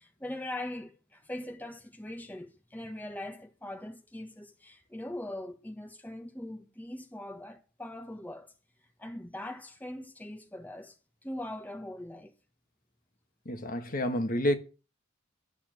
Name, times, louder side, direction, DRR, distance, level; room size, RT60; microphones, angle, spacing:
voice 1, 0.0-8.5 9.0-11.0 11.2-12.3, left 1 dB, 10° left, 1.4 m, -41 dB
voice 2, 13.5-14.6, left 1 dB, 45° left, 1.7 m, -29 dB
12.5 x 6.9 x 9.2 m
head